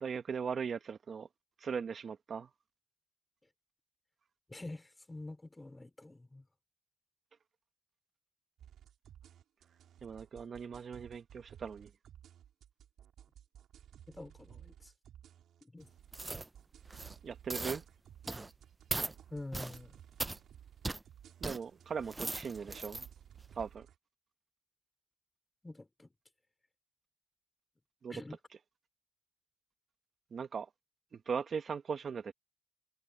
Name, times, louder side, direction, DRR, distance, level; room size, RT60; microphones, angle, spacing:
voice 1, 0.0-1.3 1.6-2.5 10.0-11.9 17.2-17.8 21.4-23.1 23.5-23.9 28.0-28.1 30.3-30.7 31.1-32.3, right 6 dB, 45° right, 1.1 m, -39 dB
voice 2, 4.5-6.5 14.1-14.9 15.6-15.9 19.3-20.0 25.6-26.1 28.1-28.4, left 2 dB, 15° left, 3.1 m, -47 dB
sound 1, 8.6-24.0, right 10 dB, 70° right, 4.0 m, -57 dB
sound 2, 16.1-16.5 16.9-17.2 17.5-17.8 18.3-18.5 18.9-19.1 19.5-19.8 20.2-20.4 20.8-21.0 21.4-21.6 22.0-23.1 23.5-23.6, right 2 dB, 15° right, 0.5 m, -38 dB
cardioid pair, 90°, 0 cm